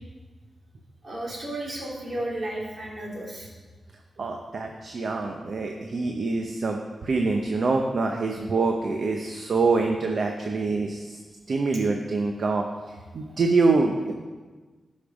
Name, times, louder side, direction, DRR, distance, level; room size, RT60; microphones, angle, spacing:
voice 1, 1.0-3.5, right 1 dB, 45° right, -3 dB, 2.7 m, -33 dB
voice 2, 4.2-11.2 11.5-12.6 13.1-14.1, right 3 dB, 60° right, 3 dB, 0.8 m, -25 dB
12.0 x 5.3 x 5.2 m, 1.3 s
wide cardioid pair, 90°, 0 cm